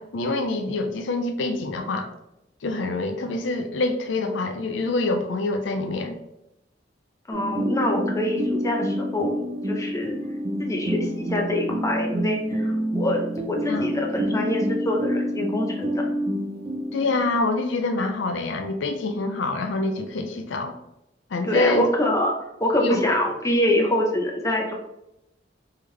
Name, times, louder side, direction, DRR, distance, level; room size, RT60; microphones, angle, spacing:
voice 1, 0.0-2.1 2.6-6.2 13.7-13.9 16.9-20.8 21.3-21.9 22.8-23.0, left 2 dB, 75° left, 5 dB, 0.5 m, -26 dB
voice 2, 7.3-10.2 10.6-16.0 21.4-22.3 22.6-24.7, left 1 dB, 20° left, 1 dB, 0.7 m, -25 dB
sound 1, 7.3-17.4, equal, 35° right, 0.6 m, -27 dB
3.6 x 3.3 x 3.3 m, 0.87 s
head